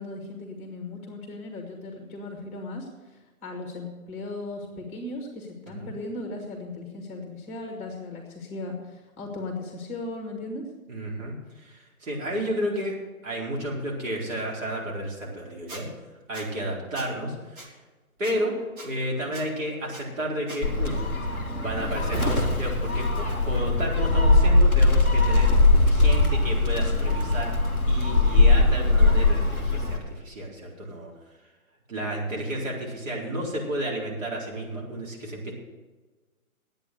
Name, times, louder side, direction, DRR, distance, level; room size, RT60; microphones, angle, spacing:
voice 1, 0.0-10.6, left 2 dB, 15° left, 1 dB, 1.8 m, -37 dB
voice 2, 10.9-12.9 13.2-15.9 16.3-17.8 18.2-18.5 18.8-21.0 21.6-25.5 25.9-27.5 27.9-31.1 31.9-35.5, right 1 dB, 60° right, -3 dB, 4.4 m, -32 dB
Squeak, 15.7-15.8 16.3-16.5 16.9-17.1 17.6-17.7 18.2-18.3 18.8-18.9 19.3-19.5 19.9-20.0 20.5-20.6, right 2 dB, 35° right, 2.6 m, -41 dB
Gull seagull, 20.6-30.0, left 2 dB, 5° right, 0.6 m, -21 dB
10.5 x 8.9 x 8.0 m, 1.3 s
hypercardioid pair, 150°, 43 cm